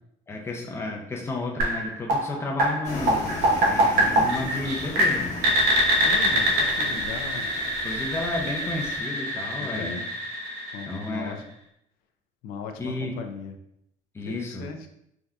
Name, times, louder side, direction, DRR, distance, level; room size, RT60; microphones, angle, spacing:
voice 1, 0.3-3.2 3.7-5.6 6.9-7.1 7.8-10.0 10.8-11.5 12.8-13.1 14.1-14.8, left 2 dB, 15° left, 0 dB, 0.5 m, -32 dB
sound 1, 1.6-11.4, right 1 dB, 80° right, 0.8 m, -25 dB
sound 2, 2.8-9.0, left 2 dB, 50° left, 1.0 m, -37 dB
voice 2, 6.0-7.5 9.6-10.0 10.7-11.4 12.4-13.5 14.2-14.9, left 5 dB, 80° left, 6 dB, 0.4 m, -37 dB
3.4 x 2.6 x 2.3 m, 0.78 s
cardioid pair, 110°, 15 cm